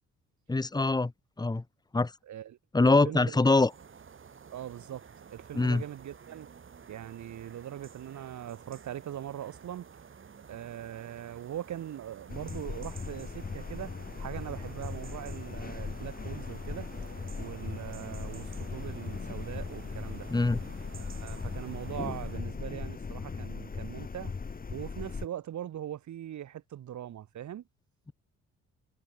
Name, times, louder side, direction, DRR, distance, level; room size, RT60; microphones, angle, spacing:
voice 1, 0.5-1.1 1.4-1.6 1.9-2.1 2.7-3.7 5.5-5.8 20.3-20.6, left 3 dB, 15° left, 1.3 m, -24 dB
voice 2, 2.3-2.6 2.9-3.4 4.5-5.0 5.3-6.5 6.9-10.0 10.5-16.9 17.4-20.3 20.9-24.3 24.7-27.7, right 11 dB, 70° right, 5.1 m, -41 dB
sound 1, 3.6-22.5, right 6 dB, 40° right, 4.9 m, -51 dB
sound 2, 12.3-25.3, left 5 dB, 30° left, 2.3 m, -39 dB
cardioid pair, 90°, 30 cm